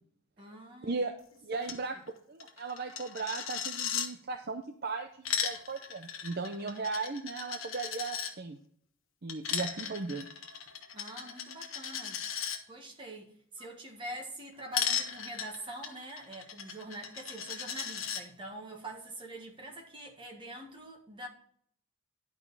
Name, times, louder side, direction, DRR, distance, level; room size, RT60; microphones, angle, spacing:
voice 1, 0.4-1.1 1.5-1.8 10.9-12.2 12.7-21.3, right 1 dB, 25° right, 1.6 m, -45 dB
voice 2, 1.4-2.0 2.3-8.6 9.2-10.3, right 4 dB, 45° right, 0.6 m, -37 dB
Coin (dropping), 1.6-1.8 2.1-2.2 2.4-4.1 5.0-8.3 9.3-12.6 14.7-18.2, left 8 dB, 75° left, 1.2 m, -36 dB
11.0 x 5.2 x 4.8 m
head